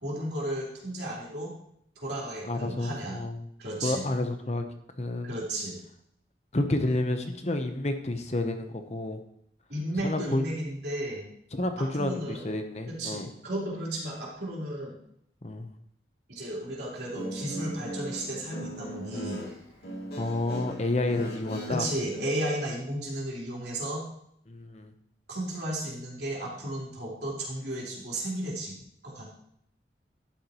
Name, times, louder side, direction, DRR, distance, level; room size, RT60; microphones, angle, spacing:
voice 1, 0.0-1.5 2.0-3.2 3.6-4.0 5.2-5.8 9.7-11.2 11.8-12.5 12.9-14.9 16.3-19.4 21.7-24.0 25.3-28.8 29.0-29.3, right 1 dB, 70° right, -5 dB, 3.5 m, -34 dB
voice 2, 2.4-3.4 3.8-4.6 5.0-5.3 6.5-9.2 10.0-10.4 11.5-13.3 15.4-15.7 20.2-21.8 24.5-24.9, left 2 dB, 40° left, 7 dB, 0.8 m, -30 dB
Guitar, 17.0-22.3, equal, 70° left, 1.9 m, -39 dB
11.5 x 8.5 x 3.0 m, 0.71 s
head